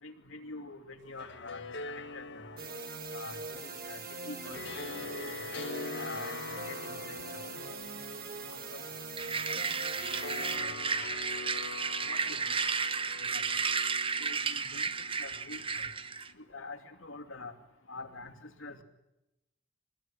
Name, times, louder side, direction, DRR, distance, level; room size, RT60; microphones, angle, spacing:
voice 1, 0.0-2.6 3.1-4.7 5.0-5.3 6.0-7.5 8.5-8.9 9.5-9.7 10.3-10.7 12.0-12.6 13.2-13.4 14.2-15.9 16.3-17.5 17.9-18.8, left 3 dB, 80° left, 5 dB, 2.7 m, -46 dB
sound 1, 1.0-16.2, left 4 dB, 60° left, 1.5 m, -44 dB
sound 2, 2.6-10.6, right 4 dB, 50° right, 4.0 m, -42 dB
sound 3, 9.2-16.3, right 5 dB, 25° right, 1.0 m, -33 dB
24.5 x 20.5 x 9.4 m, 0.94 s
head